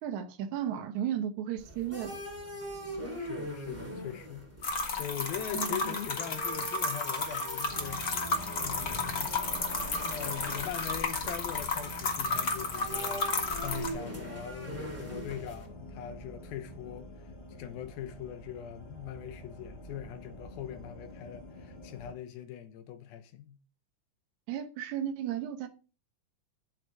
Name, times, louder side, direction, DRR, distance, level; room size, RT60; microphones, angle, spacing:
voice 1, 0.0-2.2 5.5-6.0 24.5-25.7, right 10 dB, 70° right, 1.9 m, -34 dB
sound 1, 1.6-15.7, right 1 dB, 5° right, 2.5 m, -42 dB
voice 2, 2.8-4.5 5.0-8.0 8.6-9.3 10.0-17.1 17.5-23.6, left 10 dB, 80° left, 2.7 m, -41 dB
sound 2, 4.6-13.9, left 4 dB, 50° left, 1.1 m, -33 dB
sound 3, 7.6-22.1, right 1 dB, 30° left, 0.7 m, -47 dB
11.0 x 6.6 x 4.6 m
omnidirectional pair, 4.2 m